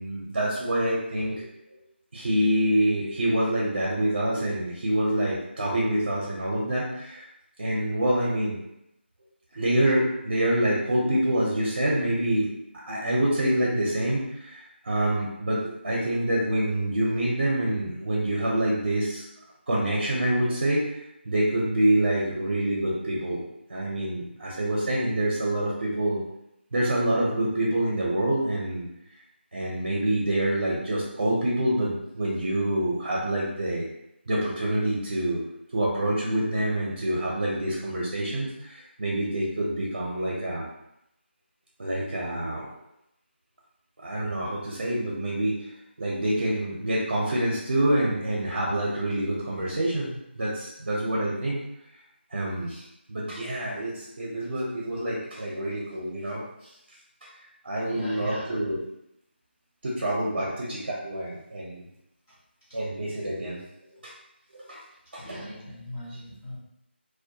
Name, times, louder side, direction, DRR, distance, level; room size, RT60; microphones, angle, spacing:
voice 1, 0.0-1.4 2.1-7.2 7.6-8.5 9.5-12.5 12.9-19.2 19.7-20.8 21.3-23.4 23.7-26.2 26.7-28.9 29.5-33.8 34.3-35.4 35.7-40.7 41.8-42.7 44.0-45.6 46.0-50.1 50.4-51.6 52.3-52.8 53.1-56.4 57.6-58.8 59.8-61.8 62.7-63.6 63.9-64.1 64.5-64.8 65.1-65.4, right 1 dB, 55° right, -5 dB, 0.6 m, -26 dB
voice 2, 57.8-58.5 60.3-60.5 62.3-62.4 62.7-62.8 65.2-66.6, left 1 dB, 10° left, -12 dB, 0.3 m, -40 dB
2.2 x 2.2 x 2.7 m, 0.82 s
figure-of-eight pair, 170°, 6 cm